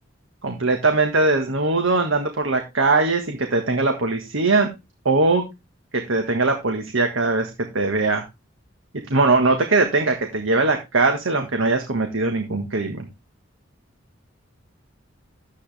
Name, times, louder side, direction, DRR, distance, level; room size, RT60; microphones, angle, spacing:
voice 1, 0.4-4.7 5.0-5.4 5.9-8.2 9.1-13.1, right 3 dB, 85° right, 4 dB, 1.6 m, -21 dB
12.0 x 8.3 x 3.4 m, 0.24 s
head